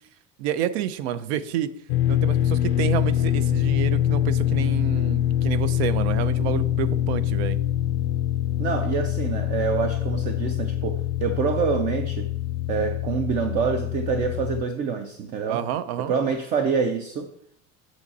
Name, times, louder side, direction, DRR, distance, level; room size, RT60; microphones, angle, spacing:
voice 1, 0.4-1.7 2.1-7.6 15.5-16.1, right 10 dB, 75° right, 15 dB, 0.7 m, -29 dB
sound 1, 1.9-14.6, left 12 dB, 65° left, 0.4 m, -24 dB
voice 2, 8.6-12.3 12.7-15.6 16.1-17.3, right 6 dB, 25° right, 7 dB, 0.4 m, -26 dB
7.9 x 6.4 x 4.1 m, 0.68 s
cardioid pair, 175°, 32 cm